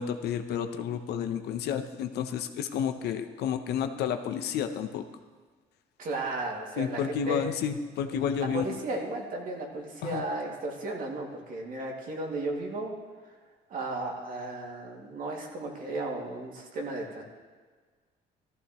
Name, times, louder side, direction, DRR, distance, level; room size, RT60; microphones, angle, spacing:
voice 1, 0.0-5.0 6.8-8.8 10.0-10.2, left 8 dB, 75° left, 7 dB, 0.9 m, -31 dB
voice 2, 6.0-7.4 8.1-12.9 13.3-13.4 13.7-17.2, right 2 dB, 55° right, 0 dB, 2.4 m, -35 dB
14.5 x 13.5 x 3.1 m, 1.5 s
cardioid pair, 110°, 17 cm